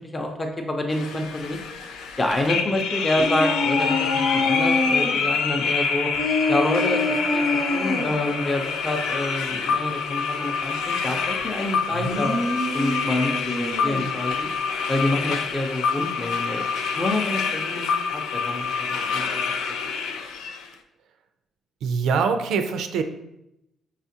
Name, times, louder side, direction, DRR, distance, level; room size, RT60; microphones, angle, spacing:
voice 1, 0.0-1.6 2.2-6.1 6.5-7.4 7.7-12.4 12.7-14.5 14.9-16.7 17.0-17.8 18.1-19.4 19.8-19.9, left 1 dB, 20° left, 2 dB, 0.6 m, -27 dB
sound 1, 0.9-20.7, left 5 dB, 90° left, 0.3 m, -27 dB
sound 2, 3.2-5.1 6.1-8.1 11.9-14.1, left 2 dB, 70° left, 0.9 m, -26 dB
voice 2, 21.8-23.0, right 5 dB, 80° right, 7 dB, 0.4 m, -23 dB
5.6 x 2.4 x 2.7 m, 0.87 s
cardioid pair, 90°, 0 cm